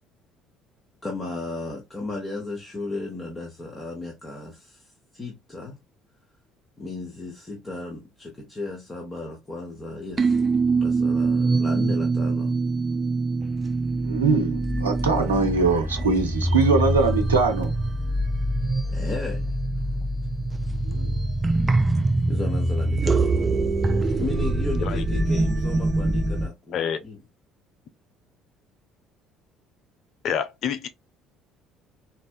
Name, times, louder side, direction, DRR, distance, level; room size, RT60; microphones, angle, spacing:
voice 1, 1.0-4.8 5.1-5.8 6.8-10.4 10.8-12.6 18.9-19.5 22.3-23.5 24.2-27.2, left 3 dB, 25° left, 1.1 m, -35 dB
sound 1, 10.2-26.5, right 2 dB, 25° right, 0.4 m, -24 dB
voice 2, 14.0-17.7 20.8-21.1, right 4 dB, 85° right, 0.4 m, -22 dB
voice 3, 30.2-30.9, left 8 dB, 55° left, 0.5 m, -27 dB
4.1 x 2.2 x 2.3 m
figure-of-eight pair, 55°, 0 cm